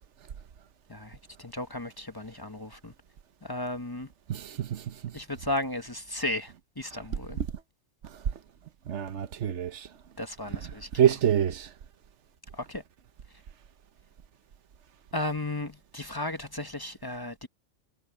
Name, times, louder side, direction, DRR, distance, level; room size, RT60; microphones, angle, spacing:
voice 1, 0.9-2.9 3.4-4.1 5.1-7.4 10.2-10.9 12.5-12.8 15.1-17.5, left 1 dB, 20° left, 1.1 m, -35 dB
voice 2, 4.3-4.8 8.9-9.9 11.0-11.7, right 10 dB, 80° right, 1.1 m, -26 dB
omnidirectional pair, 1.2 m